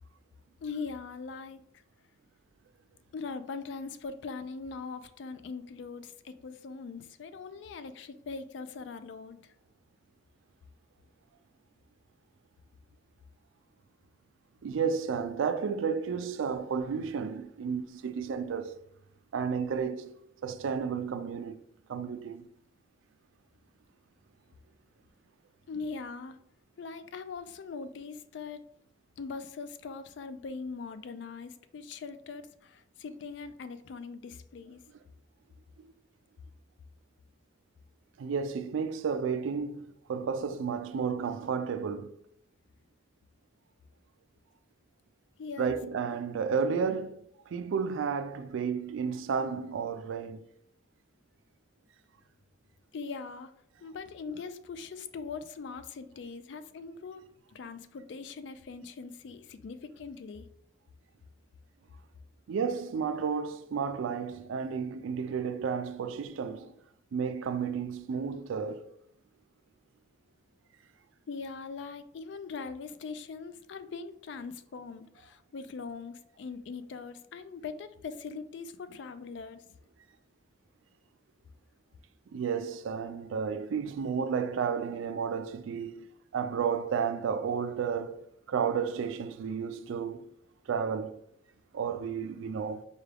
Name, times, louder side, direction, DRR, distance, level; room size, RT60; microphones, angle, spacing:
voice 1, 0.6-1.6 3.1-9.5 25.7-26.4 26.8-28.6 29.2-34.8 45.4-45.8 52.9-53.5 53.8-60.5 71.3-79.6, left 4 dB, 65° left, 0.3 m, -41 dB
voice 2, 14.6-18.8 19.3-20.1 20.4-21.6 21.9-22.5 35.8-35.9 38.2-42.1 45.6-50.4 62.5-66.7 67.1-68.9 82.3-86.1 86.3-90.2 90.7-91.2 91.7-92.8, right 6 dB, 80° right, 0.3 m, -32 dB
4.7 x 2.3 x 3.3 m
head